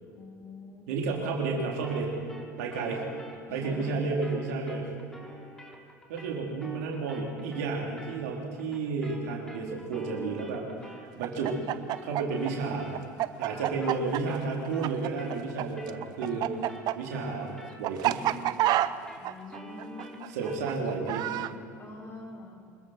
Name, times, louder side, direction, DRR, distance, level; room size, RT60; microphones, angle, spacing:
voice 1, 0.1-0.9 3.5-4.0 13.5-14.0 19.2-20.4 21.8-22.6, left 3 dB, 30° left, -1 dB, 6.9 m, -45 dB
voice 2, 0.9-2.1 2.6-3.0 3.5-4.9 6.1-11.6 12.0-13.0 13.4-16.5 17.0-17.5 17.8-18.2 20.3-21.3, right 4 dB, 65° right, -1 dB, 3.8 m, -31 dB
sound 1, 1.8-11.2 11.4-20.7, equal, 5° left, 3.8 m, -49 dB
Chicken rooster, 11.2-15.6 15.9-21.5, right 14 dB, 50° right, 0.7 m, -28 dB
26.0 x 21.5 x 4.6 m, 2.5 s
figure-of-eight pair, 70°, 9 cm